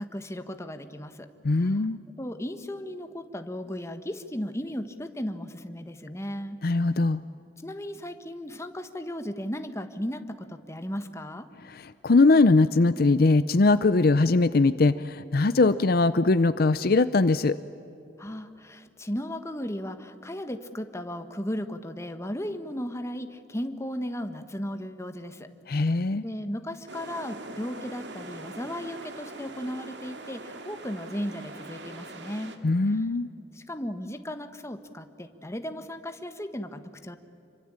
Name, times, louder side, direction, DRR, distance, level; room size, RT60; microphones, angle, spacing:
voice 1, 0.0-1.8 2.2-6.9 7.6-11.5 18.2-26.0 26.2-32.5 32.9-33.1 33.5-37.2, equal, 15° left, 8 dB, 1.4 m, -36 dB
voice 2, 1.4-2.0 6.6-7.2 11.7-17.6 25.7-26.2 32.6-33.3, left 3 dB, 60° left, 14 dB, 0.6 m, -21 dB
sound 1, 26.9-32.6, right 2 dB, 85° right, 2.2 m, -42 dB
27.0 x 24.5 x 8.9 m, 2.6 s
head